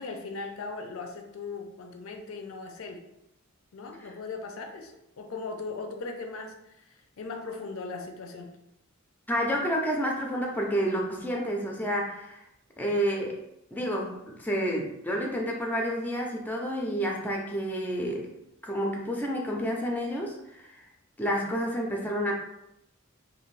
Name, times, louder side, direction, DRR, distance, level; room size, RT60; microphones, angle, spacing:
voice 1, 0.0-3.0 3.7-6.9 7.2-8.5, left 3 dB, 70° left, 4 dB, 0.5 m, -38 dB
voice 2, 9.3-12.4 12.8-13.4 13.7-18.3 18.6-20.8 21.2-22.3, equal, 10° left, 0 dB, 0.4 m, -29 dB
2.6 x 2.5 x 3.1 m, 0.83 s
head